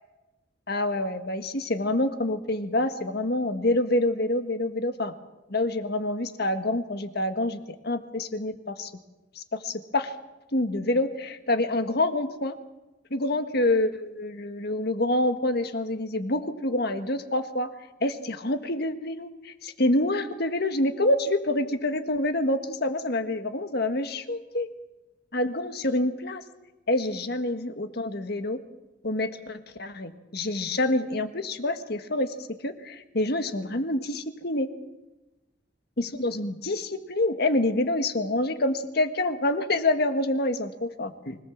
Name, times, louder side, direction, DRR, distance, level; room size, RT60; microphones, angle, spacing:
voice 1, 0.7-5.2 5.5-8.9 9.3-10.1 10.5-12.5 13.1-17.7 18.0-24.7 25.3-26.4 26.9-28.6 29.0-34.7 36.0-41.4, left 1 dB, 60° left, 8 dB, 1.7 m, -27 dB
24.5 x 18.5 x 7.3 m, 1.0 s
head